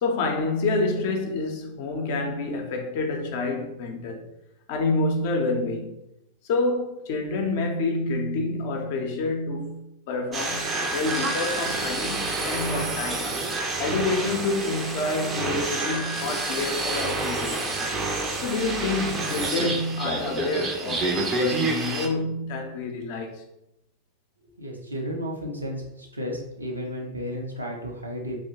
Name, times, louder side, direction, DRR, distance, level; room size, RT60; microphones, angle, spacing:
voice 1, 0.0-4.3 4.7-6.0 6.4-13.4 13.8-17.8 18.4-23.4, left 3 dB, 50° left, 0.5 m, -28 dB
sound 1, 10.3-22.1, right 3 dB, 20° right, 0.4 m, -28 dB
voice 2, 24.6-28.4, equal, 80° right, 0.6 m, -33 dB
2.8 x 2.1 x 2.7 m
figure-of-eight pair, 90°, 0 cm